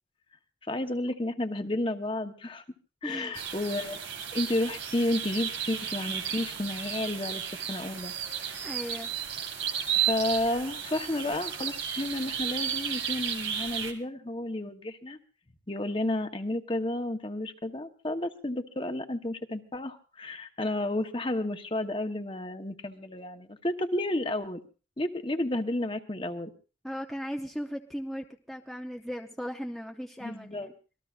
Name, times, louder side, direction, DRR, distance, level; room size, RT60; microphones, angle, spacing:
voice 1, 0.7-2.6 3.0-4.0 4.3-7.4 7.7-8.1 9.9-15.2 15.7-24.6 25.0-26.5 30.2-30.7, left 1 dB, 30° left, 7 dB, 1.1 m, -31 dB
voice 2, 3.0-3.4 8.6-9.1 26.8-30.7, equal, ahead, 2 dB, 0.7 m, -37 dB
sound 1, 3.3-13.9, right 9 dB, 90° right, 2.2 m, -33 dB
26.0 x 19.5 x 2.5 m, 0.37 s
head